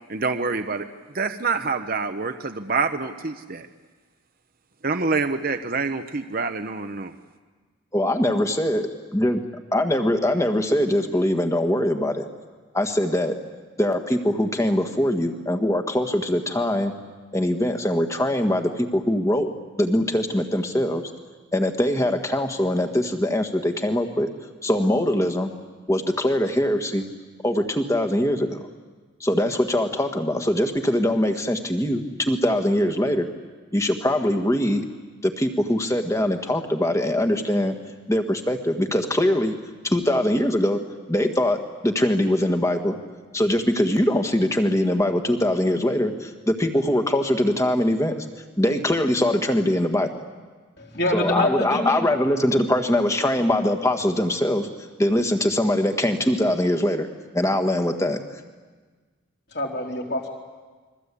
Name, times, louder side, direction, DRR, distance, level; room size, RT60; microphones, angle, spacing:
voice 1, 0.1-0.8 1.1-3.7 4.8-7.1, right 4 dB, 45° right, 7 dB, 0.9 m, -26 dB
voice 2, 7.9-9.4 9.7-12.2 12.7-13.3 13.8-16.9 17.3-19.5 19.8-21.1 21.5-24.3 24.6-25.5 25.9-27.0 27.4-28.7 29.2-33.3 33.7-34.9 35.2-37.7 38.1-39.5 39.8-40.8 41.1-41.6 41.8-42.9 43.3-48.2 48.6-50.1 51.1-54.7 55.0-57.1 57.3-58.2, left 1 dB, 15° left, 6 dB, 1.7 m, -22 dB
voice 3, 50.8-52.0 59.5-60.3, left 1 dB, 50° left, 0 dB, 4.0 m, -25 dB
29.5 x 22.5 x 8.5 m, 1.4 s
head